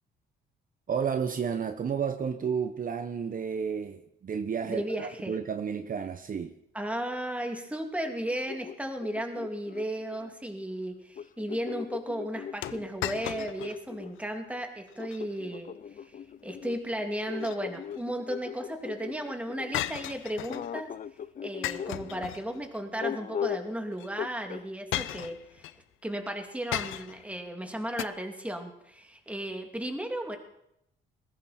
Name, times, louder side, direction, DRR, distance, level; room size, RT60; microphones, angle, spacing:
voice 1, 0.9-6.5, right 7 dB, 45° right, 8 dB, 1.1 m, -31 dB
voice 2, 4.7-5.4 6.7-15.7 16.0-16.1 16.4-20.9 21.4-25.7 26.0-30.4, right 1 dB, 5° right, 4 dB, 2.8 m, -35 dB
sound 1, 7.9-10.3 11.2-14.1 15.0-19.8 20.5-22.3 23.0-23.8 24.2-24.6, left 8 dB, 40° left, 0.5 m, -39 dB
sound 2, 12.6-13.8 14.2-14.3 14.9-15.2 17.1-18.0 19.7-20.7 21.6-22.8 23.9-24.1 24.9-25.8 26.7-27.3 28.0-28.1, left 14 dB, 85° left, 0.6 m, -36 dB
20.0 x 15.5 x 4.4 m, 0.79 s
cardioid pair, 90°, 20 cm